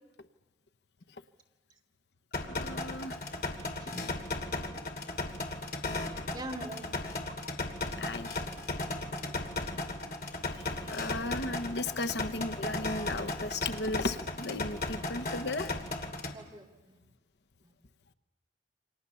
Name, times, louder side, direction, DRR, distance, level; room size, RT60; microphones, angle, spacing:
sound 1, 2.3-16.3, left 2 dB, 55° left, 2.5 m, -36 dB
voice 1, 2.4-3.2 8.0-8.4 10.9-15.7, left 2 dB, 70° left, 11 dB, 1.0 m, -35 dB
voice 2, 3.6-4.2 6.3-6.9 9.1-9.5 16.3-17.0, right 1 dB, 25° right, 0 dB, 2.6 m, -44 dB
28.5 x 26.0 x 7.0 m, 1.1 s
head